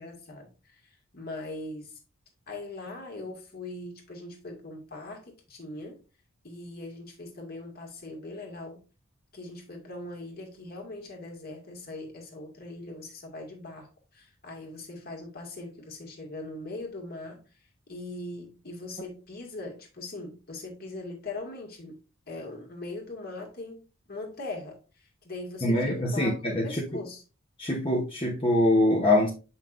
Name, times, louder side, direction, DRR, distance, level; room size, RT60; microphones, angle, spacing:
voice 1, 0.0-1.9 2.5-6.0 6.4-8.8 9.3-17.4 17.9-22.0 22.3-23.8 24.1-26.3 26.6-27.2, left 2 dB, 45° left, 1.9 m, -40 dB
voice 2, 25.6-27.0 27.6-29.3, left 1 dB, 25° left, 0.9 m, -24 dB
7.4 x 5.6 x 2.5 m
head